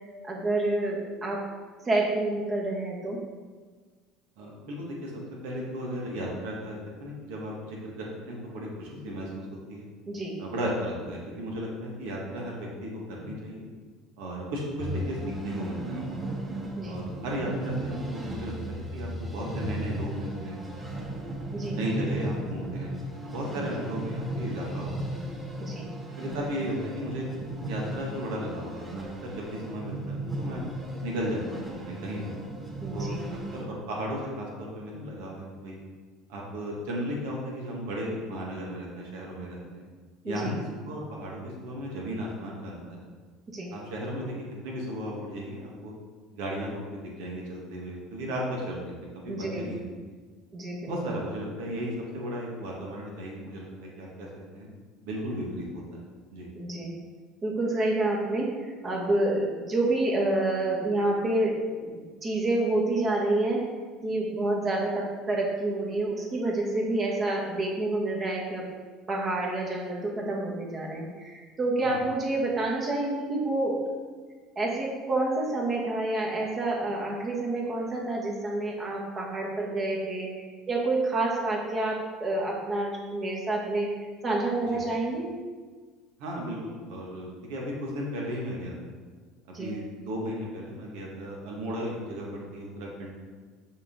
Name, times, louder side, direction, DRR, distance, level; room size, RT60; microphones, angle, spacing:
voice 1, 0.2-1.4 1.8-3.2 10.1-10.4 16.8-17.0 21.5-21.8 23.5-23.7 25.6-25.9 32.8-33.3 40.2-40.6 43.5-43.7 49.3-49.7 50.5-50.9 56.5-56.9 57.4-63.7 64.0-68.7 69.1-73.8 74.5-83.9 84.2-85.4 89.5-89.7, right 2 dB, 35° right, -2 dB, 1.7 m, -28 dB
voice 2, 4.4-5.1 5.4-9.9 10.4-13.6 14.2-15.2 15.4-16.3 16.8-20.6 21.7-22.9 23.2-25.2 26.2-27.3 27.7-30.6 31.0-32.3 32.9-33.1 33.5-35.8 36.3-39.8 40.2-43.0 43.7-44.3 44.6-45.9 46.3-48.9 49.2-49.9 50.8-54.3 54.5-54.7 55.0-56.0 56.3-56.5 71.8-72.0 84.6-84.8 86.2-88.7 89.6-93.1, equal, 75° right, -2 dB, 1.8 m, -35 dB
sound 1, 14.8-33.6, right 1 dB, 15° right, 1.9 m, -36 dB
6.5 x 4.8 x 3.7 m, 1.5 s
hypercardioid pair, 75°, 0 cm